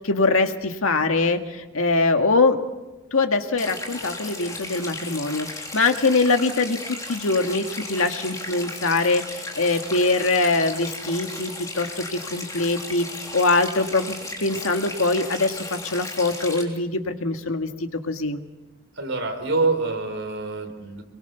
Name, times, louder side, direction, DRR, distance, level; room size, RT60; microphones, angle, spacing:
voice 1, 0.0-2.6 3.1-5.5 5.7-14.2 14.4-17.7 18.0-18.4, left 3 dB, 90° left, 5 dB, 1.9 m, -23 dB
sound 1, 3.6-16.6, left 2 dB, 15° left, 3.5 m, -35 dB
voice 2, 18.9-21.0, right 3 dB, 70° right, 5 dB, 4.2 m, -26 dB
26.0 x 22.5 x 7.0 m, 1.1 s
head